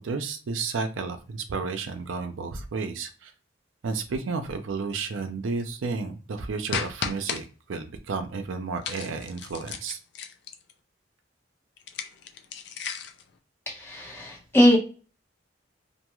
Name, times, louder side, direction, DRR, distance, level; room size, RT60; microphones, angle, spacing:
voice 1, 0.0-3.3 3.8-10.0, right 4 dB, 80° right, 6 dB, 0.5 m, -32 dB
sound 1, 6.7-7.4 8.8-10.7 11.8-13.2, left 6 dB, 60° left, 0.4 m, -34 dB
voice 2, 13.7-14.8, equal, 10° left, -2 dB, 0.8 m, -21 dB
2.5 x 2.3 x 3.0 m, 0.36 s
head